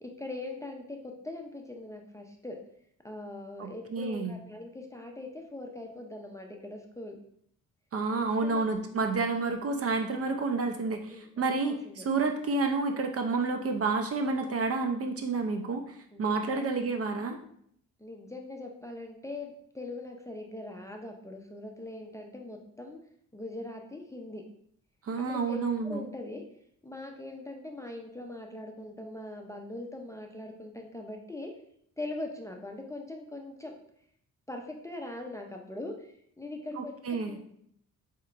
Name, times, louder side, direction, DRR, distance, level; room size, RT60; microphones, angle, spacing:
voice 1, 0.0-2.6 3.0-7.2 8.4-8.7 11.1-11.3 11.6-12.1 16.1-16.7 18.0-23.0 23.3-24.4 25.3-26.4 26.8-31.5 32.0-33.7 34.5-36.1 36.4-37.4, left 2 dB, 10° left, 1 dB, 0.5 m, -41 dB
voice 2, 3.6-4.4 7.9-17.4 25.0-26.1 36.8-37.4, right 3 dB, 45° right, 6 dB, 0.5 m, -30 dB
4.3 x 2.9 x 2.4 m, 0.68 s
cardioid pair, 80°, 34 cm